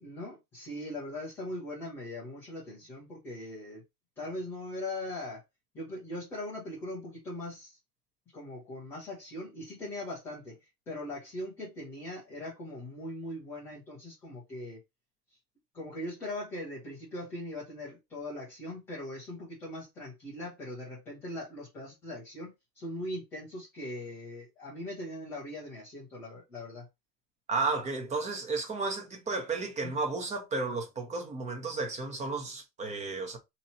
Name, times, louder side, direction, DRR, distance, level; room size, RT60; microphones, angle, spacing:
voice 1, 0.0-3.8 4.2-5.4 5.7-7.8 8.3-10.6 10.9-14.8 15.7-26.9 29.8-29.9, left 1 dB, 5° left, 0.3 m, -40 dB
voice 2, 27.5-33.4, right 3 dB, 15° right, 0.9 m, -33 dB
2.9 x 2.8 x 4.2 m
hypercardioid pair, 125°, 49 cm